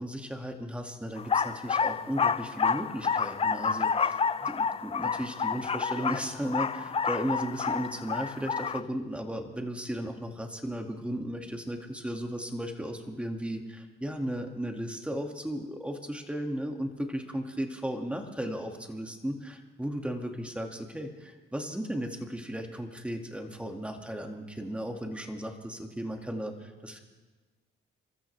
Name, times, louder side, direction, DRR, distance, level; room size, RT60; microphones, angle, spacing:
voice 1, 0.0-27.0, equal, 5° right, 3 dB, 2.2 m, -35 dB
sound 1, 1.2-8.8, left 6 dB, 30° left, 0.5 m, -29 dB
30.0 x 13.5 x 3.4 m, 1.3 s
cardioid pair, 90°, 20 cm